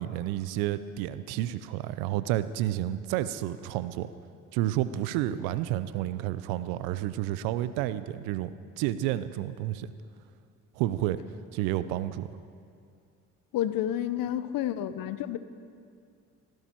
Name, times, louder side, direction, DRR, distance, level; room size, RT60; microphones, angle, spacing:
voice 1, 0.0-4.1 4.5-9.9 10.8-11.2 11.5-12.3, right 13 dB, 80° right, 14 dB, 0.7 m, -30 dB
voice 2, 13.5-15.4, left 11 dB, 65° left, 13 dB, 0.9 m, -30 dB
19.0 x 15.5 x 4.6 m, 2.3 s
hypercardioid pair, 55°, 36 cm